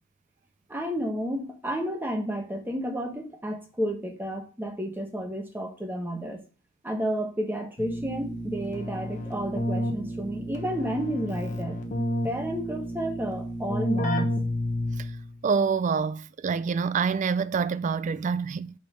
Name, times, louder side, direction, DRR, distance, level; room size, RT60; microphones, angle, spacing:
voice 1, 0.7-6.4 6.8-11.8 12.2-14.4, right 1 dB, 10° right, 1.0 m, -31 dB
Keyboard (musical), 7.8-15.3, left 1 dB, 35° left, 1.0 m, -31 dB
voice 2, 15.4-18.7, right 5 dB, 40° right, 0.3 m, -26 dB
5.2 x 4.4 x 6.1 m
head